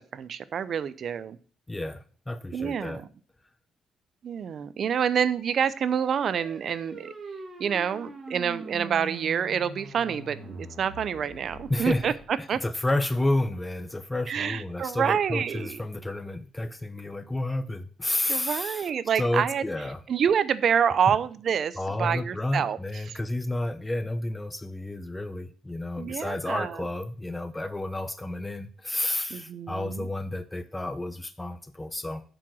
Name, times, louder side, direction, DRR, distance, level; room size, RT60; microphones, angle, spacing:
voice 1, 0.1-1.4 2.5-3.1 4.2-7.1 7.6-12.1 12.5-12.6 14.3-15.8 18.3-19.6 20.1-22.8 23.1-23.2 26.0-26.8 29.3-30.1, right 8 dB, 60° right, 16 dB, 0.6 m, -27 dB
voice 2, 1.7-3.0 11.7-18.9 19.1-20.0 21.8-32.2, left 1 dB, 15° left, 11 dB, 0.8 m, -31 dB
sound 1, 5.3-12.2, right 2 dB, 35° right, 2.9 m, -43 dB
7.6 x 4.8 x 6.2 m, 0.41 s
cardioid pair, 90°, 0 cm